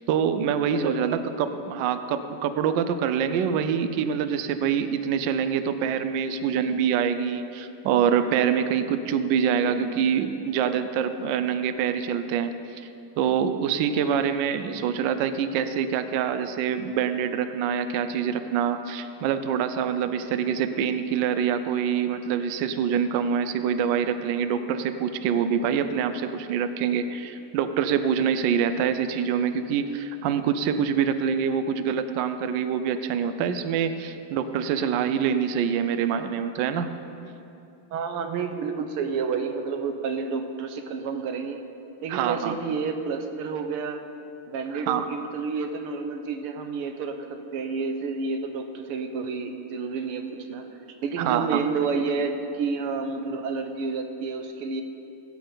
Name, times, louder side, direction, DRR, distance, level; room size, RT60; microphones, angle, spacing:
voice 1, 0.1-12.9 13.2-36.9 42.1-42.6 44.7-45.1 51.2-51.6, right 7 dB, 70° right, 10 dB, 1.1 m, -25 dB
voice 2, 0.7-1.7 9.3-9.8 37.9-41.6 42.0-44.0 44.5-50.7 51.0-54.8, right 5 dB, 90° right, 6 dB, 1.8 m, -30 dB
19.0 x 8.5 x 3.9 m, 2.7 s
omnidirectional pair, 2.4 m